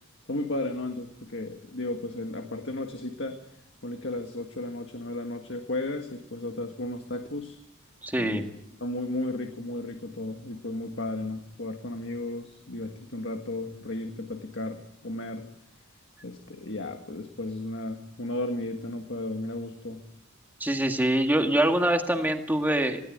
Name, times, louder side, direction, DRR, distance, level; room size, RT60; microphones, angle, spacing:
voice 1, 0.3-3.4 3.8-7.6 8.2-8.5 8.8-15.5 16.2-20.0, left 2 dB, 60° left, 5 dB, 1.7 m, -34 dB
voice 2, 8.0-8.5 20.6-23.0, right 1 dB, 10° right, 4 dB, 2.0 m, -24 dB
20.5 x 17.0 x 9.5 m, 0.82 s
head